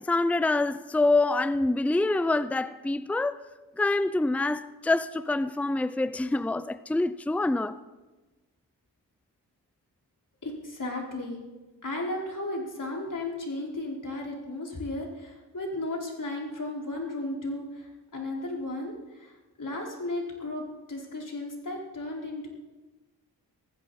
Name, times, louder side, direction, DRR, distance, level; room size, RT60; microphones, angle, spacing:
voice 1, 0.0-3.4 3.8-7.8, left 2 dB, 5° left, 0.6 m, -26 dB
voice 2, 10.4-11.4 11.8-22.5, left 2 dB, 45° left, 4.9 m, -35 dB
20.0 x 15.0 x 4.3 m
supercardioid pair, 45°, 43 cm